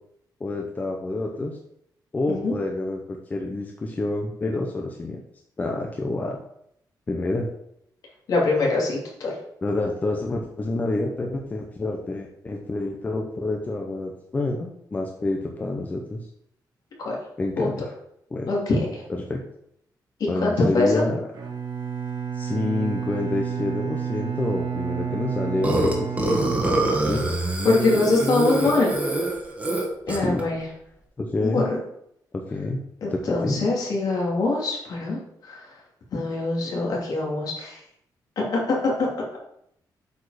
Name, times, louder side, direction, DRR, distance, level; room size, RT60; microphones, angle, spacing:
voice 1, 0.4-1.6 2.1-5.2 5.6-6.4 7.1-7.5 9.6-16.2 17.4-17.9 18.3-18.5 19.1-19.4 20.3-21.2 22.3-27.2 30.2-30.4 31.2-31.7 32.3-32.8 33.1-33.6, left 2 dB, 20° left, 1 dB, 0.8 m, -28 dB
voice 2, 8.3-9.3 17.0-17.1 17.6-17.7 18.5-19.0 20.4-21.0 27.6-28.9 30.1-30.7 31.4-31.8 33.0-35.6 36.1-37.8 38.4-39.4, left 3 dB, 60° left, -3 dB, 2.8 m, -23 dB
Bowed string instrument, 21.3-27.4, right 7 dB, 70° right, 1.8 m, -30 dB
Burping eructation, 25.6-30.4, right 2 dB, 20° right, 1.5 m, -24 dB
8.2 x 4.9 x 4.9 m, 0.73 s
wide cardioid pair, 170°, 7 cm